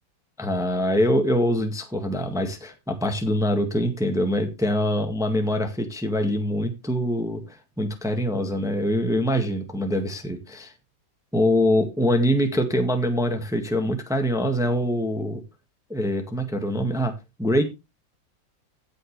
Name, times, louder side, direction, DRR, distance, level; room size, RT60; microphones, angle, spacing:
voice 1, 0.4-10.7 11.3-15.4 15.9-17.1 17.4-17.6, equal, ahead, 5 dB, 1.5 m, -24 dB
16.0 x 6.3 x 3.3 m, 0.24 s
omnidirectional pair, 2.1 m